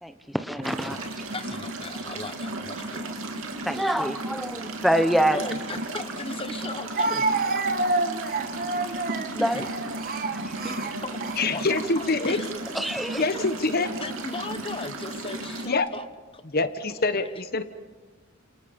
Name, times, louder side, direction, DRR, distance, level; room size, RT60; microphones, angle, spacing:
voice 1, 0.0-1.2 3.6-5.4 9.3-9.6 10.3-10.5 12.7-13.2, right 1 dB, ahead, 9 dB, 1.0 m, -26 dB
sound 1, 0.6-15.7, right 2 dB, 70° right, 3.2 m, -35 dB
voice 2, 0.9-3.2 5.3-7.3 9.4-9.6 10.6-11.6 12.0-12.5 13.3-13.5 14.0-16.1 16.3-16.4 17.0-17.2, left 3 dB, 25° left, 11 dB, 1.1 m, -37 dB
Speech, 5.8-5.9 6.9-11.8 12.6-12.9 13.8-14.4, right 3 dB, 45° right, 1.5 m, -29 dB
voice 3, 11.4-12.4 13.2-13.9 15.6-15.9 16.4-17.6, left 3 dB, 45° left, 10 dB, 1.2 m, -25 dB
29.5 x 28.0 x 5.4 m, 1.3 s
head